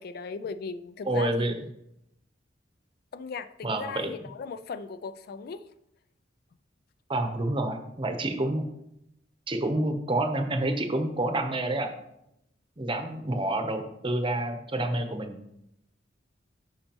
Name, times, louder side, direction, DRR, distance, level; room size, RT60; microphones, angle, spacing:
voice 1, 0.0-1.5 3.1-5.6, left 5 dB, 55° left, 12 dB, 0.3 m, -37 dB
voice 2, 1.0-1.6 3.6-4.1 7.1-8.6 9.5-12.0 12.8-15.4, right 1 dB, 25° right, 6 dB, 0.8 m, -28 dB
10.5 x 5.4 x 3.0 m, 0.80 s
head